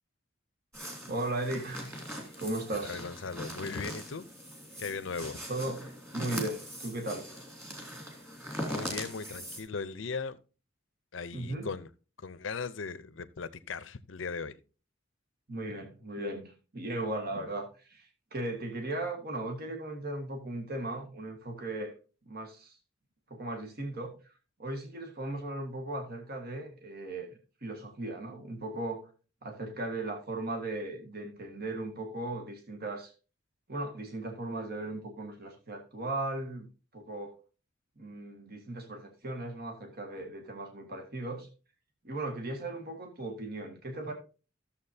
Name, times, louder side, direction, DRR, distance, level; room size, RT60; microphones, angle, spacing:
sound 1, 0.7-9.6, equal, 15° right, 2.8 m, -41 dB
voice 1, 1.1-2.0 2.4-3.0 5.5-5.9 6.1-7.3 11.3-11.7 15.5-21.9 22.3-22.8 23.3-24.1 24.6-27.3 27.6-29.1 29.4-33.1 33.7-36.7 36.9-37.4 38.0-41.5 42.0-44.1, right 2 dB, 50° right, 1.7 m, -37 dB
voice 2, 2.8-4.3 4.8-5.4 8.7-10.4 11.1-11.9 12.2-14.6, left 4 dB, 75° left, 0.7 m, -38 dB
13.0 x 7.2 x 2.7 m
head